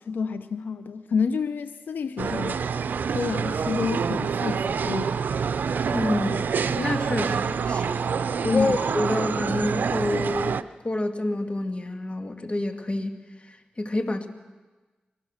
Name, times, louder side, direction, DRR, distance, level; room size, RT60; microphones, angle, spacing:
voice 1, 0.0-2.6 3.1-5.1 8.5-8.8, left 5 dB, 85° left, 0.7 m, -29 dB
sound 1, 2.2-10.6, right 6 dB, 80° right, 0.6 m, -27 dB
voice 2, 5.9-10.6 10.8-13.2 13.5-14.3, left 2 dB, 40° left, 2.0 m, -28 dB
23.0 x 20.0 x 6.5 m
cardioid pair, 55°, 3 cm